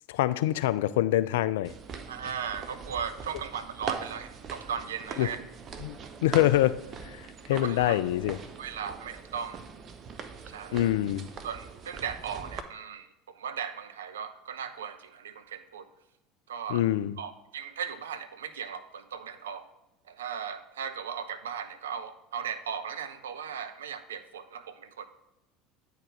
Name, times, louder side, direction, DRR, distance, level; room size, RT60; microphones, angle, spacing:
voice 1, 0.1-1.7 5.2-5.3 5.8-5.9 6.2-8.4 10.7-11.3 16.7-17.2, left 14 dB, 70° left, 15 dB, 0.3 m, -25 dB
sound 1, 1.6-12.6, right 6 dB, 40° right, 0.7 m, -42 dB
voice 2, 2.1-5.4 7.5-8.0 8.6-9.6 10.4-10.8 11.4-15.9 16.5-16.8 17.2-19.7 20.1-25.0, right 7 dB, 75° right, 10 dB, 0.5 m, -37 dB
8.8 x 4.7 x 4.7 m, 0.89 s
figure-of-eight pair, 70°, 0 cm